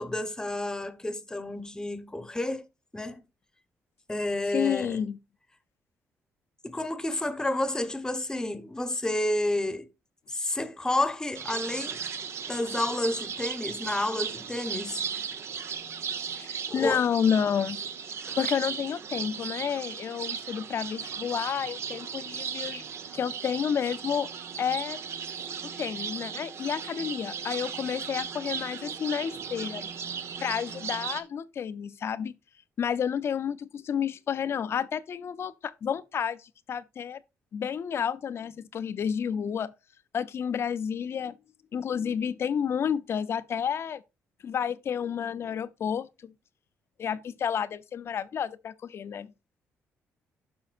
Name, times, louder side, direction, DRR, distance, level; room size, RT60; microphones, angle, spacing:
voice 1, 0.0-2.6 2.9-3.2 4.1-5.0 6.6-9.9 10.3-12.0 12.5-15.2 16.7-17.0 18.3-18.4, left 1 dB, 15° left, 1.0 m, -30 dB
voice 2, 4.5-5.2 16.4-17.8 18.4-22.8 23.1-24.3 24.6-25.0 25.6-29.9 30.4-32.3 32.8-37.2 37.5-39.7 40.1-41.4 41.7-44.0 44.4-46.3 47.0-49.3, left 8 dB, 55° left, 0.6 m, -30 dB
sound 1, 11.3-31.2, right 7 dB, 60° right, 1.0 m, -36 dB
12.0 x 5.4 x 2.5 m
cardioid pair, 110°, 5 cm